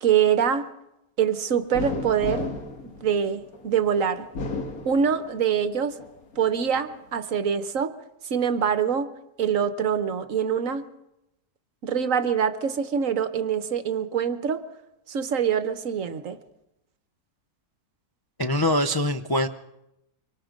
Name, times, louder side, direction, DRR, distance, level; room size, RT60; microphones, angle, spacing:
voice 1, 0.0-0.7 1.2-2.5 2.8-4.3 4.8-6.0 6.4-7.9 8.3-9.1 9.4-10.9 11.8-14.6 15.1-16.4, right 7 dB, 60° right, 12 dB, 1.3 m, -24 dB
sound 1, 1.7-3.7 4.2-5.5 6.0-6.9, left 3 dB, 65° left, 2.3 m, -33 dB
voice 2, 18.4-19.5, left 1 dB, 25° left, 5 dB, 0.4 m, -23 dB
24.5 x 24.5 x 5.2 m, 0.88 s
omnidirectional pair, 1.7 m